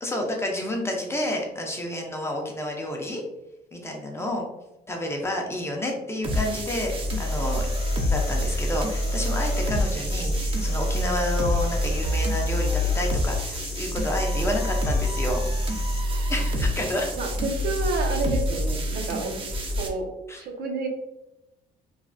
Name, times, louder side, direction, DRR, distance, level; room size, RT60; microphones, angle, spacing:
voice 1, 0.0-3.2 3.7-4.5 4.9-7.7 8.1-15.5 16.3-17.1 20.3-20.4, left 1 dB, 15° left, 0 dB, 0.5 m, -30 dB
sound 1, 6.2-19.9, left 1 dB, 30° right, 0.5 m, -26 dB
sound 2, 7.1-16.0, left 4 dB, 70° left, 0.7 m, -41 dB
voice 2, 17.2-19.3 19.8-20.1 20.4-20.9, right 3 dB, 65° right, 2 dB, 0.7 m, -29 dB
3.2 x 2.2 x 2.5 m, 0.95 s
cardioid pair, 110°, 17 cm